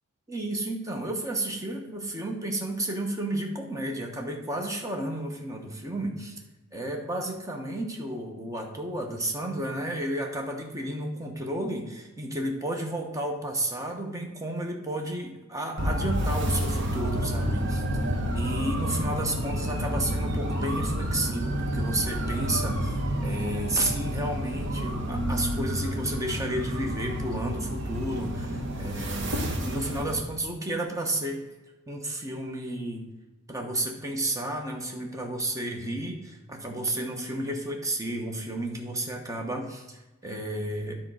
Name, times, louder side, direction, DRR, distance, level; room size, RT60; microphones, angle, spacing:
voice 1, 0.3-6.4 6.7-17.8 18.3-31.4 31.9-33.1 33.5-40.0 40.2-41.0, right 1 dB, 15° right, 1 dB, 1.0 m, -32 dB
sound 1, 15.8-30.2, equal, 55° right, 1.1 m, -29 dB
9.7 x 4.4 x 6.3 m, 1.1 s
head